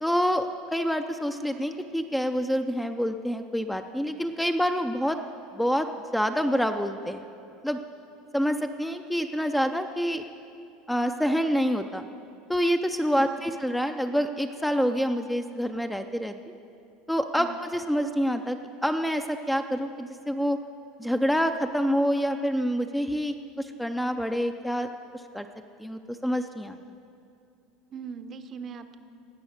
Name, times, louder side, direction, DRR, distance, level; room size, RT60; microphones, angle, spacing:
voice 1, 0.0-5.2 5.5-5.9 6.1-7.3 7.6-7.8 8.3-10.2 10.9-12.0 12.5-16.3 17.1-20.6 21.0-24.9 25.3-25.5 25.8-26.8, equal, 5° left, 6 dB, 0.4 m, -27 dB
voice 2, 13.2-13.5 17.4-17.6 27.9-29.0, right 6 dB, 35° right, 10 dB, 0.6 m, -40 dB
18.0 x 6.2 x 6.6 m, 2.6 s
supercardioid pair, 130°, 0 cm